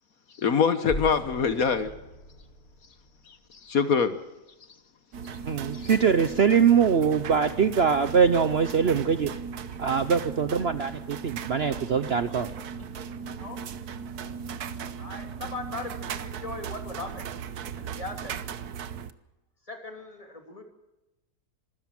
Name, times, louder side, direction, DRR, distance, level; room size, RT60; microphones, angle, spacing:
voice 1, 0.4-1.9 3.3-4.2 5.7-5.9, left 6 dB, 65° left, 11 dB, 1.6 m, -24 dB
sound 1, 0.9-3.9, left 1 dB, 40° left, 2.5 m, -40 dB
sound 2, 5.1-19.1, right 7 dB, 75° right, 1.5 m, -37 dB
voice 2, 5.5-9.3 9.8-12.5, right 6 dB, 50° right, 12 dB, 0.9 m, -23 dB
voice 3, 8.9-10.1 10.5-10.7 11.5-11.6 12.8-12.9 13.3-13.6 15.0-17.3 17.8-18.4 19.7-20.6, left 2 dB, 20° left, 5 dB, 3.1 m, -40 dB
26.0 x 13.5 x 7.6 m, 0.97 s
omnidirectional pair, 1.6 m